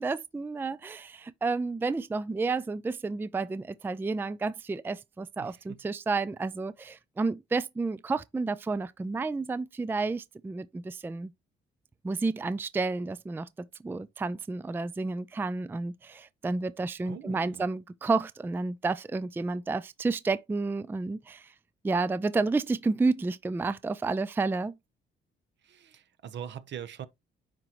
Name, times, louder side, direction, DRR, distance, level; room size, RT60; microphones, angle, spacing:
voice 1, 0.0-11.3 12.0-13.5 13.8-21.5 21.8-24.8, right 3 dB, 10° right, 0.4 m, -31 dB
voice 2, 5.4-5.8 17.0-17.6 25.6-27.1, right 9 dB, 65° right, 0.9 m, -42 dB
10.0 x 3.9 x 3.0 m
cardioid pair, 90°, 20 cm